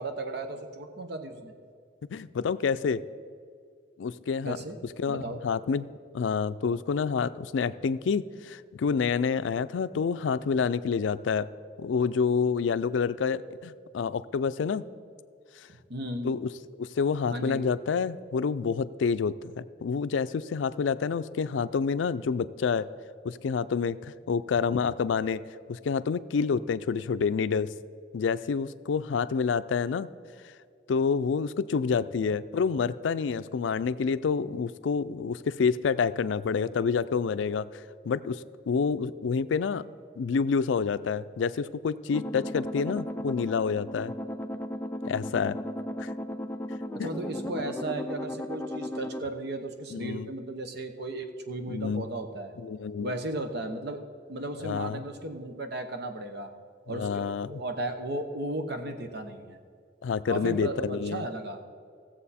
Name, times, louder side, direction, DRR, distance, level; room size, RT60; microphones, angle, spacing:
voice 1, 0.0-1.5 4.4-4.8 5.1-5.4 15.9-16.3 17.3-17.6 46.9-52.5 53.0-54.0 54.3-56.5 56.9-59.6 60.3-61.6, right 1 dB, 65° right, 7 dB, 1.0 m, -35 dB
voice 2, 2.1-3.0 4.0-4.6 5.0-5.9 6.1-11.5 11.8-14.8 16.2-16.5 16.8-22.9 23.2-25.4 25.7-27.7 28.1-30.1 30.9-37.7 38.0-39.8 40.2-44.1 45.0-45.6 46.0-46.1 47.0-47.1 49.9-50.3 51.7-52.1 52.6-53.2 54.6-55.0 56.9-57.6 60.0-61.3, left 5 dB, 85° left, 14 dB, 0.4 m, -28 dB
sound 1, 42.1-49.2, left 1 dB, 10° left, 0.4 m, -36 dB
16.5 x 7.4 x 4.2 m, 2.2 s
head